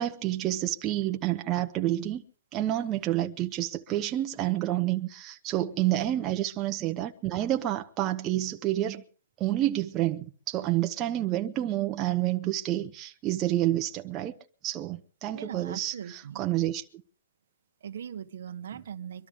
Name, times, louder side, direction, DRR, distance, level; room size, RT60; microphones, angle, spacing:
voice 1, 0.0-2.2 2.5-9.0 9.4-14.4 14.6-16.8, right 14 dB, 20° right, 0.9 m, -29 dB
voice 2, 15.3-16.4 17.8-19.3, right 8 dB, 70° right, 1.1 m, -40 dB
24.0 x 12.5 x 3.6 m
hypercardioid pair, 170°, 0 cm